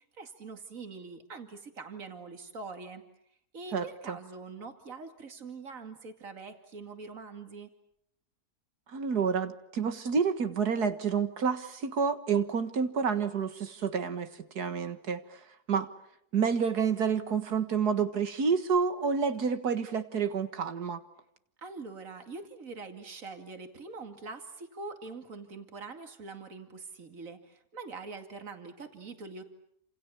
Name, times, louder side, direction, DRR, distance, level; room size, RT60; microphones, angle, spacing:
voice 1, 0.0-3.0 3.5-7.7 21.6-29.4, right 4 dB, 55° right, 5 dB, 2.8 m, -44 dB
voice 2, 3.7-4.2 8.9-14.3 14.6-15.2 15.7-15.9 16.3-21.0, right 6 dB, 80° right, 9 dB, 2.2 m, -29 dB
29.5 x 27.5 x 7.1 m, 0.73 s
omnidirectional pair, 1.6 m